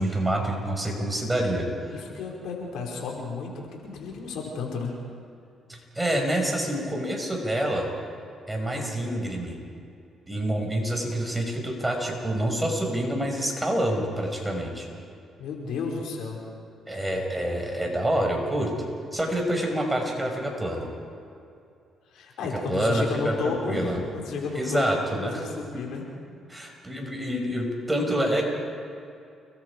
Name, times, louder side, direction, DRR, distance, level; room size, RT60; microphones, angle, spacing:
voice 1, 0.0-1.6 1.9-2.0 5.7-7.9 8.5-9.6 10.3-14.9 16.9-18.7 19.1-20.9 22.7-24.0 24.5-25.3 25.7-25.8 26.5-28.5, right 1 dB, 10° right, 1 dB, 5.8 m, -27 dB
voice 2, 1.9-4.9 15.4-16.4 22.1-26.0, left 4 dB, 80° left, -1 dB, 5.4 m, -32 dB
30.0 x 22.0 x 4.9 m, 2.5 s
cardioid pair, 90°, 0 cm